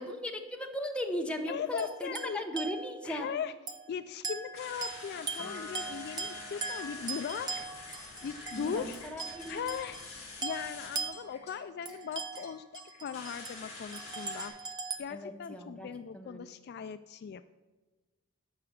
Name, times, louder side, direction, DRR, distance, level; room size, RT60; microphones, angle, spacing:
voice 1, 0.0-3.3 8.5-9.6 15.1-15.9 16.1-16.5, equal, 5° left, 3 dB, 0.9 m, -37 dB
voice 2, 1.5-2.4 3.0-3.5 3.9-7.9 8.2-9.0 9.5-10.0 10.4-14.7 15.0-17.4, left 7 dB, 50° left, 12 dB, 0.3 m, -39 dB
sound 1, 1.8-3.2 3.7-3.9 4.2-10.1 10.4-13.6 13.9-15.0, right 4 dB, 20° right, 0.7 m, -40 dB
sound 2, 4.5-14.5, left 3 dB, 30° left, 4.2 m, -47 dB
Piano, 5.4-12.1, left 2 dB, 65° left, 2.0 m, -53 dB
12.5 x 5.8 x 6.6 m, 1.2 s
head